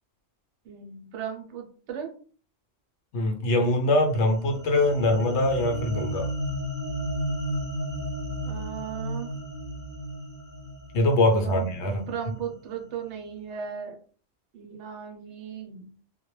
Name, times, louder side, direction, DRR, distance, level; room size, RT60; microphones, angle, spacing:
voice 1, 0.7-2.1 8.5-9.3 11.3-14.0 14.5-15.9, right 7 dB, 70° right, 3 dB, 0.9 m, -37 dB
voice 2, 3.1-6.3 10.9-12.0, left 1 dB, 70° left, 4 dB, 0.9 m, -23 dB
sound 1, 4.0-12.5, equal, 25° right, 0.4 m, -33 dB
2.2 x 2.1 x 3.0 m, 0.42 s
omnidirectional pair, 1.3 m